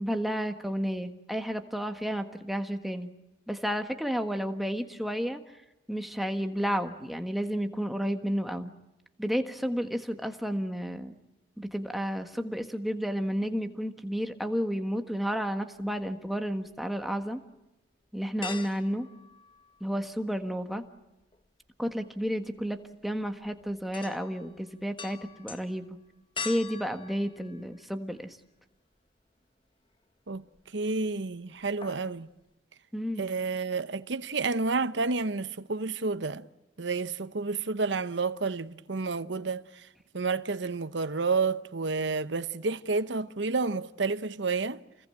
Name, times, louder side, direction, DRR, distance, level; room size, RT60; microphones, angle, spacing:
voice 1, 0.0-3.1 3.5-5.6 5.9-8.7 9.2-11.1 11.6-17.4 18.1-19.1 19.8-20.8 21.8-26.0 26.4-28.4 32.9-33.3, equal, ahead, 1.5 m, -31 dB
sound 1, 15.8-16.8 17.2-17.3 18.4-20.1 20.4-28.3 28.7-28.8 30.3-30.9 31.1-31.4 31.6-32.2 32.5-32.6, left 5 dB, 30° left, 1.2 m, -44 dB
voice 2, 30.7-32.3 33.2-36.5 36.8-39.9 40.1-44.8, right 4 dB, 80° right, 0.9 m, -30 dB
29.0 x 21.0 x 8.8 m
head